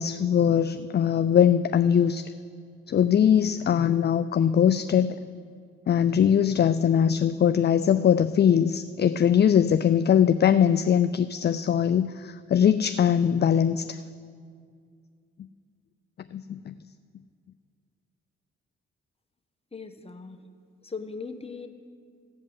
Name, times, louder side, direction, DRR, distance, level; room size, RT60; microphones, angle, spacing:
voice 1, 0.0-2.3 2.9-5.2 5.9-14.0 16.3-16.7, left 8 dB, 35° left, 12 dB, 0.4 m, -21 dB
voice 2, 19.7-20.4 20.8-21.7, left 4 dB, 20° left, 6 dB, 1.2 m, -38 dB
15.5 x 5.4 x 8.0 m, 2.1 s
supercardioid pair, 45°, 29 cm